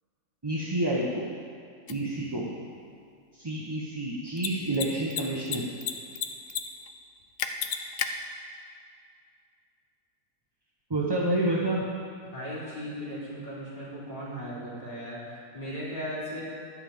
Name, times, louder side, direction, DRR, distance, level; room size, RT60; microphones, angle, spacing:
voice 1, 0.4-1.3 1.9-2.5 3.4-5.6 10.9-11.9, right 1 dB, 20° right, -5 dB, 0.9 m, -28 dB
Mechanisms, 1.9-2.0 4.3-4.5 4.7-4.9 5.1-5.9 6.2-6.6 6.9-7.0 7.4-8.1, left 9 dB, 85° left, 1.3 m, -30 dB
voice 2, 12.3-16.4, equal, 25° left, -9 dB, 3.8 m, -37 dB
12.0 x 5.6 x 8.7 m, 2.3 s
omnidirectional pair, 1.7 m